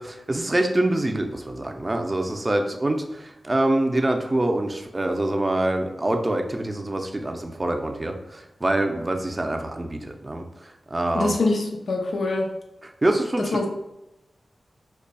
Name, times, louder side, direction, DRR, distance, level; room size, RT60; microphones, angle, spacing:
voice 1, 0.0-11.3 12.8-13.6, right 1 dB, 30° right, 4 dB, 0.5 m, -25 dB
voice 2, 11.1-12.5 13.4-13.7, left 2 dB, 80° left, 1 dB, 0.6 m, -24 dB
5.3 x 2.3 x 2.2 m, 0.90 s
cardioid pair, 45°, 0 cm